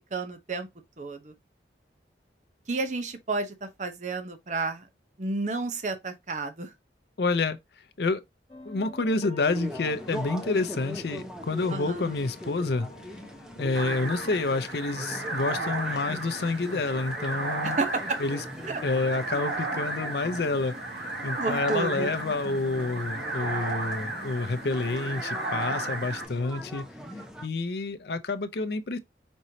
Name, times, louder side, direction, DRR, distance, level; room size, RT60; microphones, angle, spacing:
voice 1, 0.1-0.7 1.0-1.3 2.7-4.9 5.2-6.7 11.7-12.0 17.6-18.2 18.7-18.8 21.4-22.1, right 3 dB, 40° right, 0.7 m, -31 dB
voice 2, 7.2-7.6 8.0-8.2 8.7-12.9 13.6-17.8 18.2-18.4 18.8-20.7 21.2-26.8 27.4-29.0, left 3 dB, 65° left, 0.6 m, -28 dB
sound 1, 8.5-18.4, left 2 dB, 30° left, 1.3 m, -50 dB
sound 2, 9.5-27.5, equal, 5° right, 0.8 m, -41 dB
sound 3, 13.7-26.2, right 2 dB, 70° right, 1.8 m, -34 dB
5.3 x 3.1 x 2.7 m
head